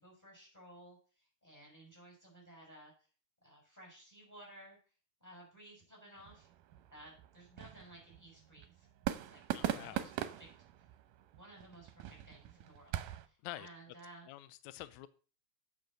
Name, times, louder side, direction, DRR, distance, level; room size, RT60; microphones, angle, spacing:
voice 1, 0.0-2.9 3.4-4.8 5.2-6.5 6.9-8.9 9.2-10.5 11.4-14.3, right 1 dB, 5° left, -3 dB, 5.8 m, -57 dB
sound 1, 6.2-13.3, right 13 dB, 80° right, 2.2 m, -42 dB
voice 2, 9.5-10.1 13.4-13.7 14.3-15.1, left 15 dB, 85° left, 14 dB, 1.6 m, -47 dB
8.3 x 7.3 x 6.5 m, 0.38 s
omnidirectional pair, 3.9 m